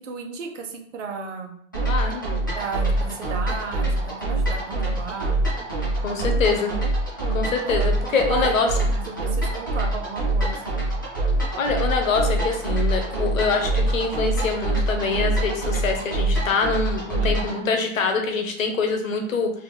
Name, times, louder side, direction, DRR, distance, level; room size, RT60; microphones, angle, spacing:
voice 1, 0.0-1.5 2.5-5.4 7.6-10.6 17.2-17.5, right 4 dB, 70° right, 3 dB, 1.0 m, -34 dB
sound 1, 1.7-17.6, right 2 dB, 20° left, 0.3 m, -25 dB
voice 2, 1.9-2.2 6.0-6.7 7.3-8.7 11.6-19.5, left 4 dB, 90° left, 4 dB, 1.1 m, -24 dB
3.5 x 2.9 x 3.3 m, 0.66 s
hypercardioid pair, 165°, 39 cm